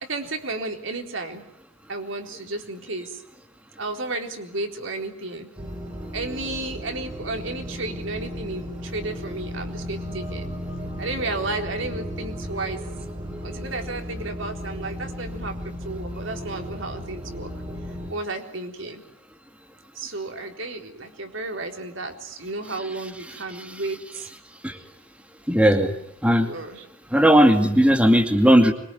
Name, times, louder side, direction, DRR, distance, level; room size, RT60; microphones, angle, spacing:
voice 1, 0.1-1.4 1.9-3.2 3.8-5.5 6.1-10.5 11.0-12.8 13.4-17.5 18.1-19.0 19.9-24.3 26.4-26.9, right 2 dB, 80° right, 4 dB, 4.1 m, -33 dB
sound 1, 5.6-18.1, equal, 25° right, 3.6 m, -35 dB
voice 2, 25.5-25.9 26.2-26.5 27.1-28.7, equal, 5° right, 4 dB, 2.5 m, -16 dB
25.5 x 23.5 x 9.5 m, 0.76 s
head